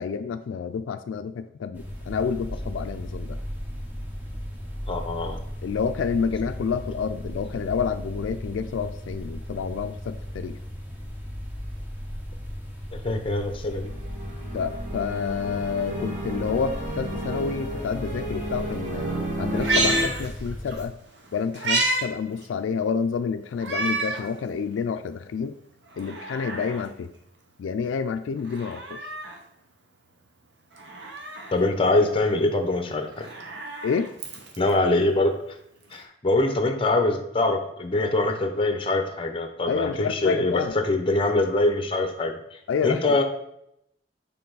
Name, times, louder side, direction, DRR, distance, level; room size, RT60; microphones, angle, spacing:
voice 1, 0.0-3.4 5.6-10.6 14.5-19.1 19.4-20.9 21.3-25.5 26.0-27.1 27.6-29.0 33.8-34.1 39.7-40.7 42.7-43.2, left 6 dB, 85° left, 9 dB, 0.3 m, -29 dB
sound 1, 1.7-20.9, equal, 10° right, 0.8 m, -36 dB
voice 2, 4.9-5.4 12.9-13.9 31.5-33.3 34.6-35.3 35.9-43.2, left 2 dB, 30° left, 6 dB, 0.7 m, -24 dB
sound 2, 13.5-20.0, right 1 dB, 40° right, 1.4 m, -32 dB
Meow, 19.5-20.8 21.2-22.1 22.4-22.5 23.6-24.3 24.8-24.9 25.9-26.9 28.4-29.4 30.7-31.6 33.0-34.7 35.9-36.0, right 2 dB, 65° right, 1.0 m, -29 dB
6.8 x 3.5 x 3.9 m, 0.77 s
head